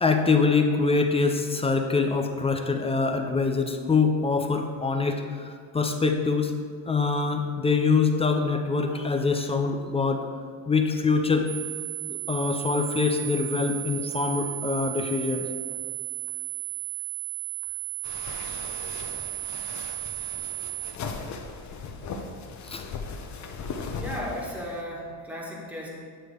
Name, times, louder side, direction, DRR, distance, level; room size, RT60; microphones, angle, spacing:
voice 1, 0.0-5.2 5.7-6.5 6.9-10.2 10.7-11.5 12.1-15.5 22.7-22.8, left 4 dB, 15° left, 4 dB, 0.5 m, -24 dB
sound 1, 11.5-20.9, right 22 dB, 60° right, 1.9 m, -34 dB
sound 2, 18.0-24.8, left 4 dB, 40° left, 0.9 m, -38 dB
voice 2, 24.0-25.9, equal, 5° right, -3 dB, 1.7 m, -35 dB
9.3 x 3.2 x 6.4 m, 2.1 s
cardioid pair, 115°, 43 cm